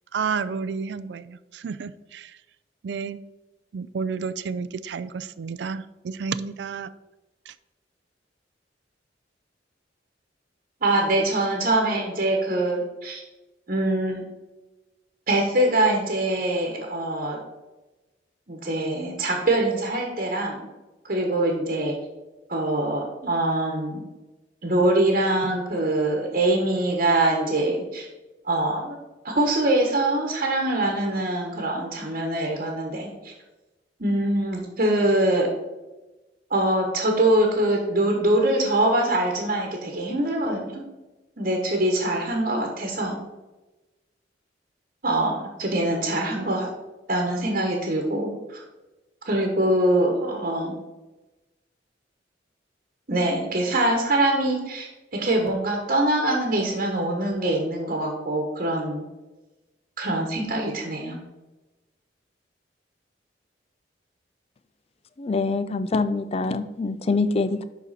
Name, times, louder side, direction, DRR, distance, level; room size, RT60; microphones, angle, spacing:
voice 1, 0.1-2.4 2.8-3.2 3.7-6.9 7.5-7.6, right 5 dB, 70° right, 15 dB, 0.4 m, -31 dB
voice 2, 10.8-13.2 13.7-14.2 15.3-17.4 18.5-20.6 21.0-21.9 22.5-24.0 24.6-28.1 28.4-29.0 29.2-33.3 34.0-35.5 36.5-40.8 41.4-43.2 45.0-46.7 47.1-48.6 49.2-50.8 53.1-54.9 55.1-59.0 60.0-61.2, right 1 dB, 50° right, 1 dB, 1.2 m, -23 dB
voice 3, 65.2-67.6, left 3 dB, 35° left, 12 dB, 0.4 m, -25 dB
11.0 x 4.1 x 4.2 m, 1.1 s
head